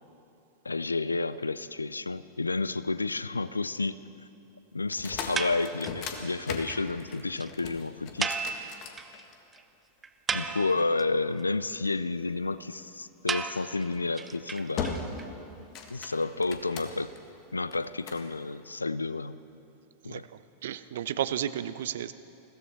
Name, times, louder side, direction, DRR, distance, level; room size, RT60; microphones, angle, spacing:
voice 1, 0.6-4.0 4.7-8.4 10.3-15.1 15.9-17.1 17.5-19.4 20.0-20.2, left 3 dB, 80° left, 16 dB, 0.4 m, -31 dB
sound 1, 4.8-9.6 10.3-11.6 13.4-13.7 14.2-14.4 14.8-15.3 15.6-17.2 17.7-18.3, left 6 dB, 40° left, 1.6 m, -38 dB
sound 2, 5.4-6.1 6.4-6.5 6.7-6.8 7.1-7.2 7.4-7.5 8.2-9.2 9.5-9.6 10.0-11.0 13.3-15.2, right 5 dB, 15° right, 0.6 m, -34 dB
voice 2, 20.0-22.1, right 11 dB, 60° right, 14 dB, 0.5 m, -33 dB
21.5 x 16.0 x 4.2 m, 2.7 s
figure-of-eight pair, 90°, 0 cm